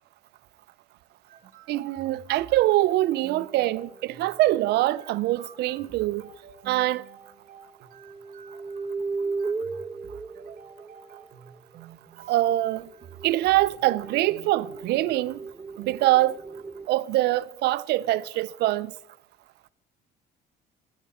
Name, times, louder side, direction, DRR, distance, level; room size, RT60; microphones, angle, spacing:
sound 1, 1.3-14.5, right 8 dB, 55° right, 1.5 m, -50 dB
voice 1, 1.7-6.3 6.7-7.0 12.3-12.9 13.2-15.4 15.8-16.4 16.9-18.9, right 16 dB, 75° right, 0.5 m, -24 dB
sound 2, 3.2-4.9 6.5-6.6 7.9-11.6 12.5-16.9, right 4 dB, 10° right, 0.4 m, -36 dB
16.5 x 11.5 x 4.3 m
cardioid pair, 110°, 17 cm